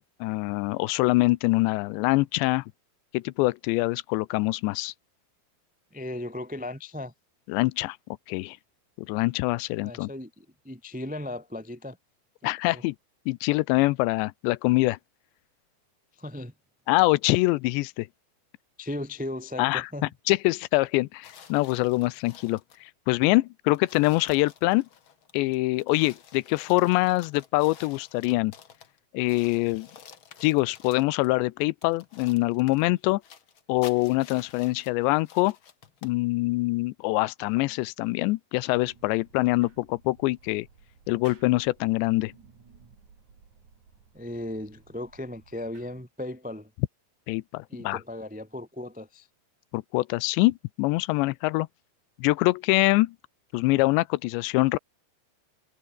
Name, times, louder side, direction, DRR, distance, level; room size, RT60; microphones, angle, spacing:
voice 1, 0.0-2.6 3.1-4.9 7.5-8.0 8.3-8.6 9.0-10.1 12.4-13.0 13.3-15.0 16.9-18.1 19.6-19.9 20.3-22.6 23.1-24.9 25.3-28.5 29.1-29.9 30.4-33.2 33.7-35.6 36.0-40.7 41.1-42.3 47.3-48.0 49.7-51.7 52.2-53.2 53.5-54.8, left 21 dB, 85° left, 2.9 m, -24 dB
voice 2, 5.9-7.1 9.8-12.0 12.7-12.8 16.1-16.5 18.8-20.0 44.1-46.7 47.7-49.3, left 1 dB, 10° right, 0.5 m, -36 dB
sound 1, 21.2-22.9 23.3-23.4 23.7-29.0 29.3-31.3 31.8-36.2, left 7 dB, 55° left, 1.5 m, -51 dB
sound 2, 38.7-46.0, right 5 dB, 45° right, 5.3 m, -56 dB
omnidirectional pair, 5.0 m